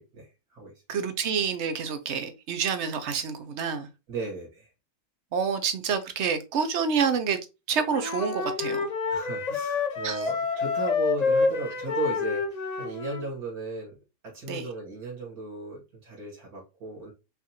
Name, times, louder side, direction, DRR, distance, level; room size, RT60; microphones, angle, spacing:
voice 1, 0.0-0.7 4.1-4.7 9.1-14.0 14.2-17.1, right 2 dB, 80° right, 2.3 m, -36 dB
voice 2, 0.9-3.9 5.3-7.4 7.7-8.8 10.0-10.2 14.5-14.6, right 6 dB, 55° right, 0.9 m, -28 dB
Wind instrument woodwind instrument, 7.9-13.3, left 4 dB, 50° left, 0.5 m, -28 dB
5.6 x 2.5 x 2.9 m
omnidirectional pair, 1.6 m